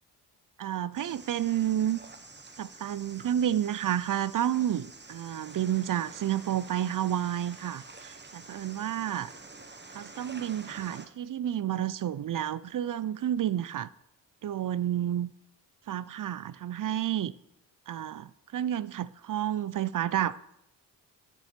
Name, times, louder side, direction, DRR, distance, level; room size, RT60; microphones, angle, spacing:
voice 1, 0.6-2.0 2.6-9.3 9.9-13.9 14.4-15.3 15.9-17.3 17.9-20.6, right 11 dB, 50° right, 0.5 m, -30 dB
sound 1, 0.9-11.1, right 3 dB, 25° right, 1.2 m, -48 dB
8.7 x 7.2 x 5.2 m
supercardioid pair, 45°, 42 cm